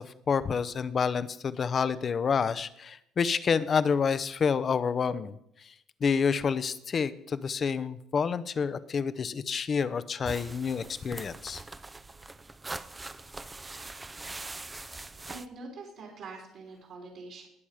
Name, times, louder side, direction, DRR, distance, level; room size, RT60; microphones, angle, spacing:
voice 1, 0.0-5.3 5.6-5.7 6.0-11.6, left 6 dB, 35° left, 15 dB, 0.7 m, -28 dB
sound 1, 10.2-15.5, right 2 dB, 15° right, 0.5 m, -42 dB
voice 2, 15.3-17.5, right 3 dB, 65° right, 0 dB, 3.1 m, -44 dB
19.5 x 7.1 x 5.0 m, 0.79 s
cardioid pair, 115°, 0 cm